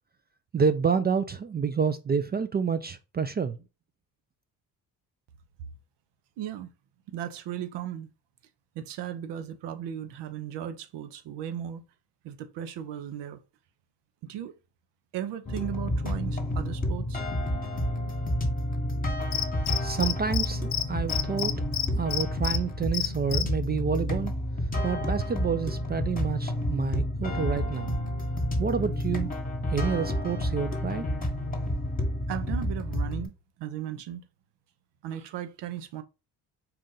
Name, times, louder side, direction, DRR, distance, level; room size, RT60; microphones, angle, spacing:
voice 1, 0.5-3.6 19.8-21.6 21.9-24.3 24.8-28.0 28.6-29.3 29.7-31.1, right 6 dB, 25° right, 0.3 m, -28 dB
voice 2, 6.4-6.7 7.1-8.1 8.7-11.8 12.2-13.4 14.2-14.5 15.1-17.2 32.3-33.3 33.6-34.3 35.0-36.0, right 10 dB, 70° right, 0.7 m, -36 dB
sound 1, 15.5-33.3, left 1 dB, 20° left, 1.2 m, -30 dB
Cricket, 19.3-20.5 20.7-20.8 21.1-22.6 22.9-23.4, left 11 dB, 50° left, 0.6 m, -28 dB
4.3 x 2.5 x 3.7 m
supercardioid pair, 65°, 43 cm